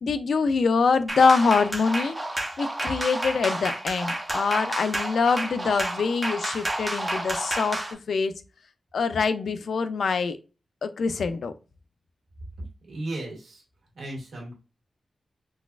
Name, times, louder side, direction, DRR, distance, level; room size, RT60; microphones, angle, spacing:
voice 1, 0.0-2.2 2.6-8.3 8.9-10.4 10.8-11.5, left 5 dB, 75° left, 10 dB, 0.3 m, -24 dB
sound 1, 1.1-7.9, right 1 dB, 15° right, 0.6 m, -30 dB
voice 2, 12.9-13.6 13.9-14.6, right 2 dB, 80° right, -3 dB, 1.5 m, -35 dB
3.9 x 2.3 x 2.3 m, 0.32 s
wide cardioid pair, 120°, 0 cm